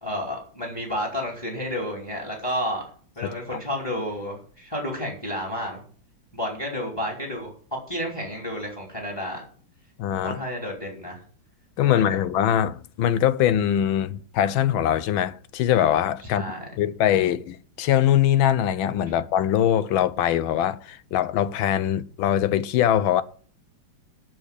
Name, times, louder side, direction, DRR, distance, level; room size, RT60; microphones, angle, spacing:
voice 1, 0.0-2.9 3.2-5.8 6.3-7.5 7.9-9.4 10.2-11.2 11.9-12.2 16.2-16.6 19.1-19.2, equal, 10° left, 2.9 m, -31 dB
voice 2, 10.0-10.4 11.8-16.4 16.8-23.2, left 10 dB, 80° left, 1.5 m, -22 dB
7.7 x 7.1 x 8.3 m
omnidirectional pair, 2.2 m